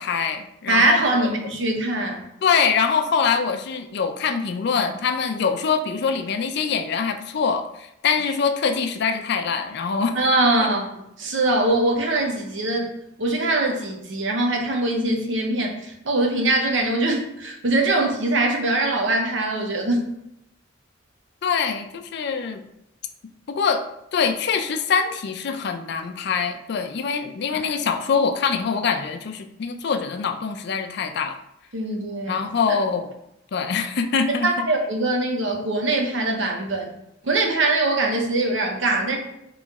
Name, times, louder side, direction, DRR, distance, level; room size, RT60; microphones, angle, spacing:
voice 1, 0.0-1.3 2.4-10.2 21.4-22.6 23.5-23.8 24.1-31.4 32.3-33.2 33.5-34.7, left 5 dB, 60° left, 7 dB, 0.4 m, -24 dB
voice 2, 0.7-2.2 10.2-12.9 13.2-20.0 27.5-27.6 31.7-32.4 34.4-36.9 37.2-39.2, right 2 dB, 70° right, 2 dB, 0.8 m, -22 dB
4.1 x 3.0 x 3.5 m, 0.82 s
head